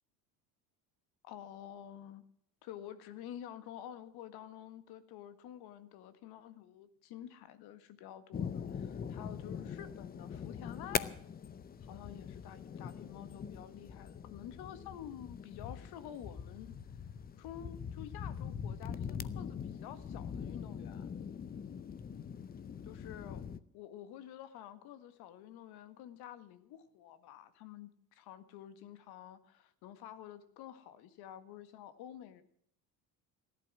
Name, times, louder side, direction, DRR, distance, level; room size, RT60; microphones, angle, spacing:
voice 1, 1.2-2.2 2.6-11.1 11.8-16.7 17.4-21.1 22.8-23.5 23.7-32.4, left 10 dB, 65° left, 13 dB, 1.9 m, -49 dB
sound 1, 8.3-23.6, left 7 dB, 20° left, 0.6 m, -42 dB
17.5 x 11.5 x 6.3 m, 0.66 s
cardioid pair, 135°, 41 cm